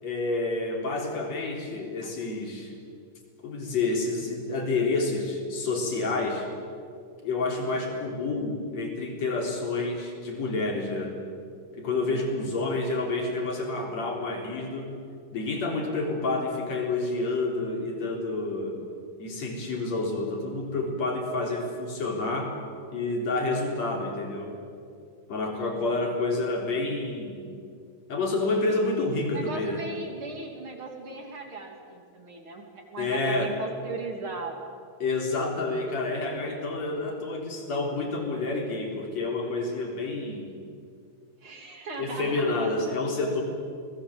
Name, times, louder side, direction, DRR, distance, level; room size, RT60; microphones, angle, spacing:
voice 1, 0.0-2.7 3.4-6.5 7.2-11.1 11.8-14.9 15.3-18.8 19.2-22.5 22.9-24.6 25.3-27.5 28.1-29.8 33.0-33.5 35.0-40.5 42.0-43.4, left 3 dB, 45° left, 1 dB, 4.8 m, -29 dB
voice 2, 12.1-12.5 25.5-26.1 29.3-34.7 37.0-37.1 41.4-42.4, right 3 dB, 35° right, 2 dB, 3.3 m, -38 dB
29.0 x 20.0 x 7.8 m, 2.3 s
omnidirectional pair, 4.6 m